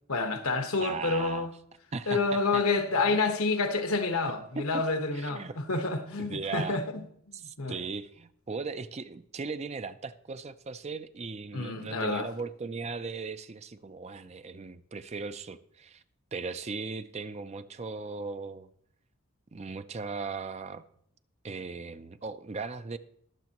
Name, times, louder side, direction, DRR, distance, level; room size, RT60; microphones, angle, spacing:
voice 1, 0.1-1.5 2.1-7.0 7.4-7.8 11.5-12.3, left 3 dB, 80° left, 1.4 m, -28 dB
voice 2, 0.8-1.5 1.9-2.6 3.1-3.2 4.6-4.7 5.1-5.6 6.2-6.8 7.3-16.0 16.3-18.7 19.5-20.8 21.4-23.0, right 4 dB, 30° right, 0.5 m, -38 dB
21.5 x 7.4 x 3.0 m
head